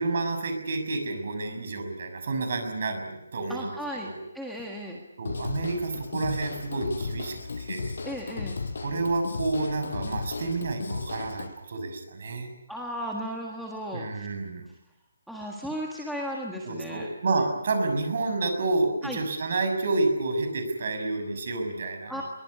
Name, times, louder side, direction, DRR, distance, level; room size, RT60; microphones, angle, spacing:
voice 1, 0.0-3.8 4.0-4.2 5.2-7.9 8.8-12.5 13.9-14.6 16.6-22.2, right 3 dB, 40° right, 6 dB, 6.4 m, -29 dB
voice 2, 3.5-4.1 4.3-5.0 8.0-8.5 12.7-14.3 15.3-17.1 19.0-19.2 22.1-22.2, equal, ahead, -3 dB, 1.6 m, -35 dB
Drum kit / Drum, 5.2-11.5, left 4 dB, 60° left, 5.5 m, -35 dB
23.0 x 20.5 x 9.7 m, 0.92 s
hypercardioid pair, 180°, 0 cm